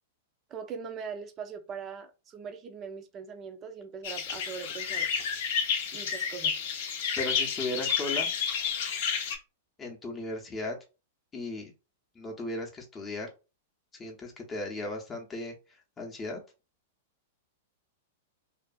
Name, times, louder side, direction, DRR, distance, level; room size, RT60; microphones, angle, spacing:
voice 1, 0.5-5.1 5.9-6.6, right 6 dB, 30° right, 0.5 m, -41 dB
sound 1, 4.0-9.4, left 7 dB, 60° left, 0.6 m, -30 dB
voice 2, 7.2-8.3 9.8-10.7 11.3-11.7 12.2-13.3 14.0-15.5 16.0-16.4, left 2 dB, 20° left, 0.7 m, -36 dB
2.5 x 2.4 x 2.3 m
hypercardioid pair, 105°, 0 cm